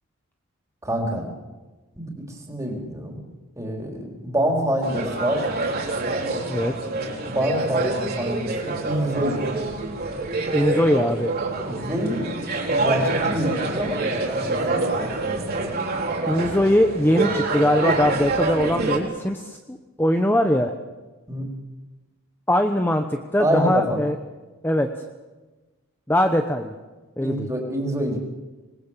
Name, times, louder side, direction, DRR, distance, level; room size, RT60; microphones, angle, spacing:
voice 1, 0.8-1.3 2.0-3.2 3.6-5.5 7.2-9.6 11.6-12.3 12.6-15.8 21.3-21.5 23.4-24.0 27.2-28.2, equal, 15° right, 0 dB, 4.1 m, -26 dB
sound 1, 4.8-19.0, right 3 dB, 45° right, 4.0 m, -26 dB
voice 2, 10.5-11.3 16.3-20.7 22.5-24.2 24.6-24.9 26.1-26.7 27.2-27.5, left 1 dB, 10° left, 5 dB, 1.0 m, -21 dB
26.0 x 20.5 x 7.5 m, 1.2 s
head